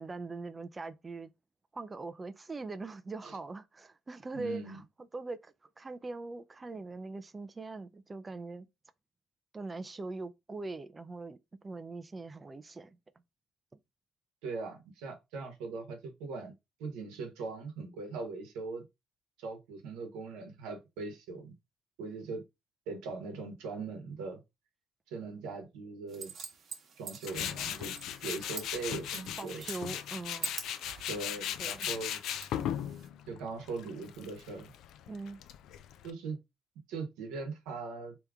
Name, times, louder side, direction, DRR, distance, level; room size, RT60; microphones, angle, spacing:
voice 1, 0.0-1.3 1.7-4.8 5.1-8.7 9.5-11.4 11.6-13.0 29.4-30.5 31.6-31.9 35.1-35.4, right 3 dB, 30° right, 0.5 m, -41 dB
voice 2, 4.3-4.8 14.4-16.5 16.8-18.8 19.4-21.5 22.0-22.4 22.9-24.4 25.1-26.3 27.0-27.9 28.2-29.6 31.1-32.2 33.3-34.7 36.0-36.4 36.9-38.2, right 4 dB, 85° right, 1.0 m, -40 dB
sound 1, 26.1-33.1, right 6 dB, 55° right, 1.1 m, -46 dB
Tools, 27.3-36.1, left 10 dB, 75° left, 0.4 m, -38 dB
3.4 x 2.9 x 3.5 m
supercardioid pair, 65°, 0 cm